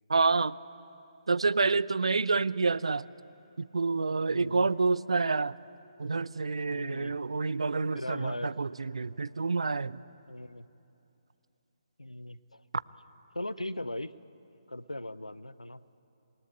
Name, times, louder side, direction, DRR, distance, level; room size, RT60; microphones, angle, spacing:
voice 1, 0.1-0.6 1.3-3.0 3.6-5.6 6.0-10.0, right 4 dB, 60° right, 19 dB, 0.6 m, -28 dB
voice 2, 4.3-4.7 6.7-7.2 7.9-8.5 10.3-10.7 12.0-12.6 13.3-14.1 14.7-15.8, left 1 dB, 80° left, 16 dB, 0.9 m, -38 dB
27.5 x 21.5 x 8.9 m, 2.8 s
figure-of-eight pair, 140°, 3 cm